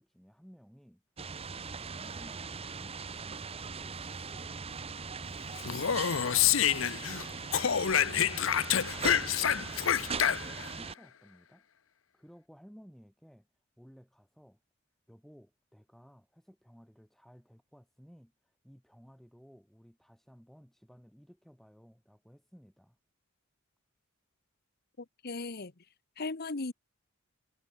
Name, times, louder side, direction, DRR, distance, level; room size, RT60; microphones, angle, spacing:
voice 1, 0.0-5.0 9.5-11.7 12.1-13.5 13.8-14.6 15.1-23.0, equal, ahead, 3.6 m, -57 dB
sound 1, 1.2-10.9, right 5 dB, 30° right, 0.8 m, -40 dB
Speech, 5.6-7.2 7.5-10.7, left 9 dB, 70° left, 0.7 m, -27 dB
voice 2, 25.2-25.7 26.2-26.7, left 3 dB, 50° left, 1.1 m, -36 dB
head